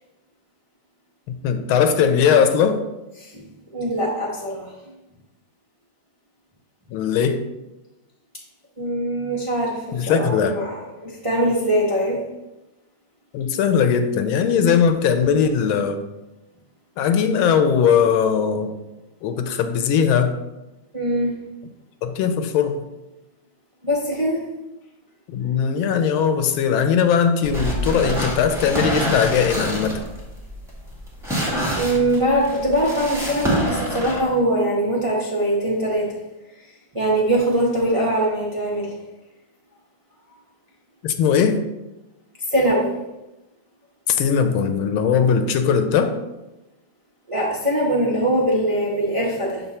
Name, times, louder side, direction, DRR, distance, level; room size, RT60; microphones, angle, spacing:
voice 1, 1.4-2.8 6.9-7.4 9.9-10.5 13.3-16.0 17.0-18.8 19.2-20.4 22.0-22.8 25.3-29.9 41.0-41.6 44.1-46.1, left 7 dB, 85° left, 7 dB, 1.5 m, -19 dB
voice 2, 3.7-4.7 8.8-12.2 20.9-21.3 23.8-24.4 31.7-36.1 36.9-39.0 42.5-43.0 47.3-49.8, right 1 dB, 30° right, -4 dB, 0.5 m, -22 dB
sound 1, 27.4-34.2, equal, ahead, 1.4 m, -26 dB
7.0 x 3.6 x 4.2 m, 1.0 s
omnidirectional pair, 2.2 m